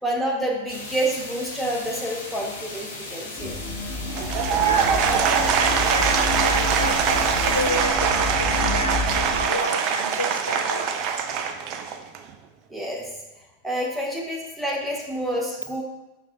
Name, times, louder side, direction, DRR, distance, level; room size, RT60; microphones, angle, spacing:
voice 1, 0.0-3.6 12.7-13.1 13.6-15.8, right 1 dB, 5° right, -3 dB, 0.8 m, -28 dB
sound 1, 0.7-7.7, left 2 dB, 60° left, 0.7 m, -37 dB
sound 2, 3.4-9.5, left 3 dB, 30° left, 1.4 m, -30 dB
Applause / Crowd, 4.1-12.3, right 7 dB, 40° right, 0.3 m, -23 dB
voice 2, 4.6-10.9, left 1 dB, 90° left, 2 dB, 0.4 m, -30 dB
5.7 x 2.6 x 2.4 m, 1.1 s
figure-of-eight pair, 90°, 0 cm